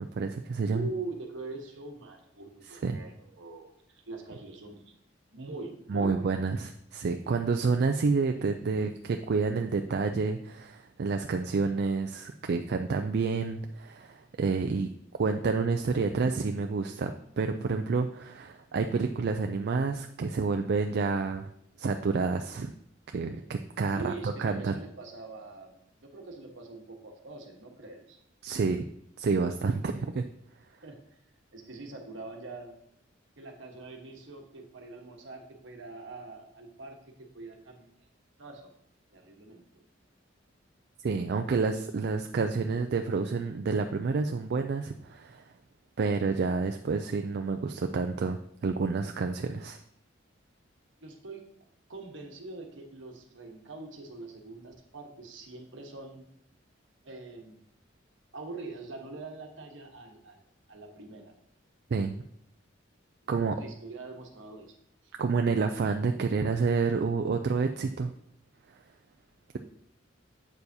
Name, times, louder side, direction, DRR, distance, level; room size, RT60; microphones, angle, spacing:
voice 1, 0.0-0.9 2.7-3.0 5.9-14.9 15.2-21.5 21.8-22.7 23.1-24.8 28.4-28.8 29.2-30.3 41.0-45.4 46.0-49.8 61.9-62.2 63.3-63.5 65.2-68.1, right 4 dB, 55° right, 6 dB, 0.4 m, -29 dB
voice 2, 0.7-4.8 5.3-6.3 23.9-28.2 30.8-31.0 31.5-32.8 33.4-38.0 38.4-38.7 39.1-39.8 51.0-51.5 51.9-56.3 57.0-57.6 58.3-60.4 60.7-61.3 63.3-64.7 65.0-65.1, right 3 dB, 70° right, 2 dB, 1.2 m, -43 dB
8.0 x 6.8 x 2.8 m, 0.70 s
head